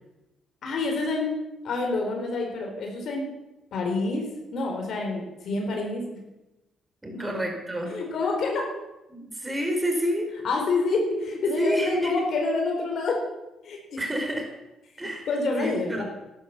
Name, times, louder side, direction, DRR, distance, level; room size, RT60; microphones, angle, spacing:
voice 1, 0.6-1.4 1.6-3.3 3.7-4.2 4.5-6.0 7.1-7.3 7.9-8.7 10.4-13.2 13.6-14.0 15.3-16.0, left 3 dB, 65° left, 1 dB, 4.3 m, -27 dB
voice 2, 7.0-7.9 9.1-10.3 11.6-12.3 14.0-14.5 15.0-15.3 15.6-16.0, equal, 15° right, 2 dB, 5.0 m, -28 dB
12.5 x 12.0 x 7.4 m, 0.97 s
cardioid pair, 90°, 0 cm